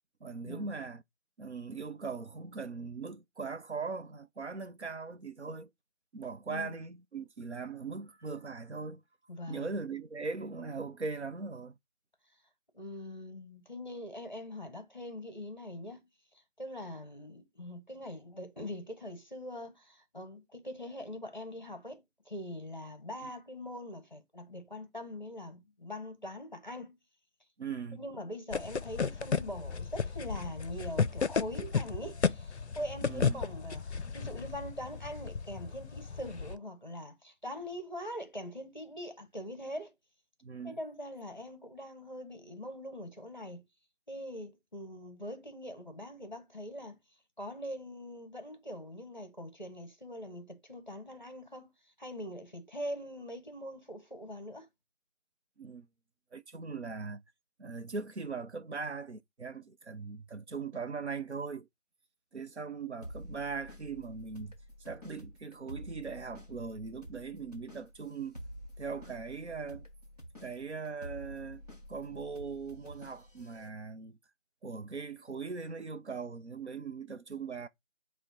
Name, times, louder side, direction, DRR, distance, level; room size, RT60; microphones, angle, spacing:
voice 1, 0.2-1.0 1.4-5.7 6.1-9.0 9.5-11.8 23.2-23.3 27.6-28.0 33.0-33.5 40.4-40.8 55.6-55.9 56.3-57.2 57.6-61.7 62.3-64.5 64.9-68.4 68.8-69.9 70.4-74.2 74.6-77.7, right 4 dB, 65° right, 0.5 m, -40 dB
voice 2, 9.3-9.7 12.7-16.1 16.6-27.0 28.0-39.9 40.6-43.6 44.1-47.0 47.4-51.7 52.0-54.7, left 1 dB, 40° left, 0.8 m, -43 dB
sound 1, 28.5-36.6, left 5 dB, 65° left, 0.5 m, -34 dB
sound 2, 63.0-73.7, equal, 30° right, 0.9 m, -49 dB
4.4 x 2.1 x 3.7 m
figure-of-eight pair, 175°, 37 cm